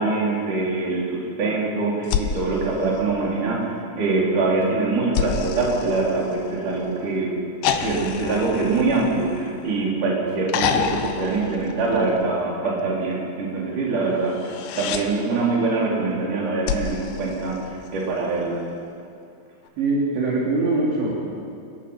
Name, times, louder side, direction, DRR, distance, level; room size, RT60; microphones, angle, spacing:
voice 1, 0.0-7.3 7.7-18.6, right 3 dB, 40° right, -4 dB, 5.2 m, -24 dB
sound 1, 2.0-3.6 5.1-6.8 7.6-9.9 10.5-12.3 14.3-15.1 16.7-18.1 19.7-19.8, left 8 dB, 75° left, 3.2 m, -29 dB
voice 2, 19.8-21.1, right 3 dB, 65° right, -4 dB, 5.0 m, -22 dB
29.5 x 18.0 x 5.8 m, 2.4 s
omnidirectional pair, 5.7 m